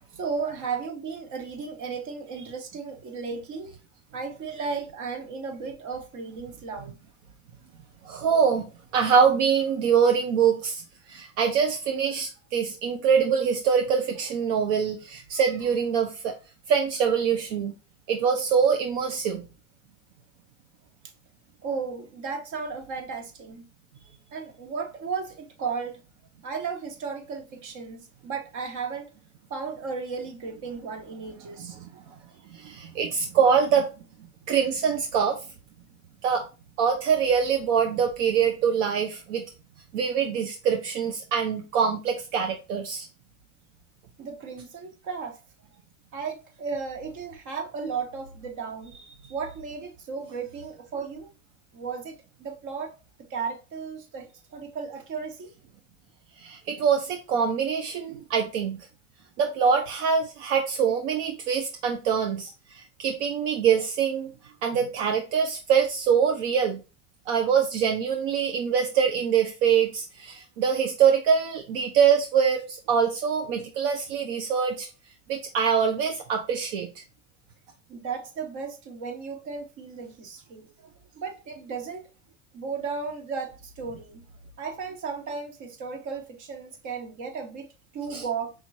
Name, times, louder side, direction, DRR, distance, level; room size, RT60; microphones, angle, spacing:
voice 1, 0.1-3.8 4.1-6.9 21.6-23.7 24.3-26.0 26.4-29.1 29.5-31.8 44.2-45.4 46.1-49.0 49.3-51.3 51.7-53.0 53.3-55.5 77.9-80.7 81.2-82.1 82.5-84.2 84.6-87.7 87.9-88.5, right 5 dB, 55° right, 1.5 m, -34 dB
voice 2, 8.0-8.6 8.9-10.8 11.1-16.3 16.7-17.7 18.1-19.4 31.6-31.7 32.5-33.9 34.5-35.4 36.2-36.5 36.8-39.4 39.9-43.1 56.4-58.9 59.4-64.3 64.6-66.8 67.3-74.9 75.3-76.9 88.1-88.2, right 7 dB, 80° right, 0.8 m, -24 dB
5.0 x 3.0 x 2.7 m
supercardioid pair, 95°, 35 cm